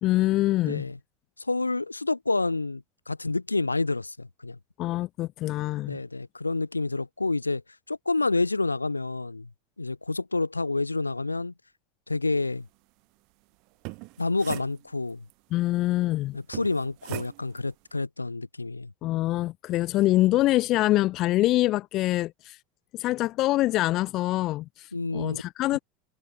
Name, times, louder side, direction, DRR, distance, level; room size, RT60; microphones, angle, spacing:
voice 1, 0.0-0.8 4.8-6.0 15.5-16.4 19.0-22.6 22.9-25.8, left 16 dB, 45° left, 1.3 m, -25 dB
voice 2, 0.6-1.0 1.4-4.6 5.9-7.6 7.9-9.5 9.8-11.5 12.1-12.7 14.2-15.2 16.3-18.9 24.9-25.4, left 3 dB, 90° left, 7.1 m, -28 dB
sound 1, 13.7-15.3 16.5-17.7, right 30 dB, 55° right, 7.2 m, -40 dB
figure-of-eight pair, 80°, 0 cm